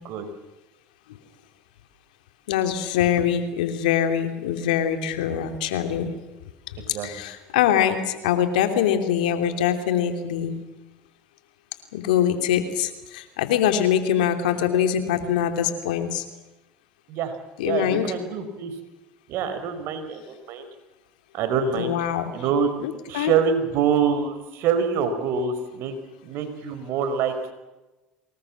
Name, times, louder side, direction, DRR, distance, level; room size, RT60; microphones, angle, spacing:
voice 1, 2.5-6.1 7.0-10.6 11.9-16.2 17.6-18.1 21.7-22.2 22.8-23.3, left 9 dB, 85° left, 8 dB, 3.0 m, -23 dB
voice 2, 6.9-7.2 17.1-17.3 17.6-18.8 19.3-20.7 21.3-22.0 22.3-22.7 23.1-25.9 26.2-27.5, right 6 dB, 60° right, 8 dB, 5.0 m, -25 dB
25.0 x 20.5 x 7.4 m, 1.1 s
hypercardioid pair, 85°, 4 cm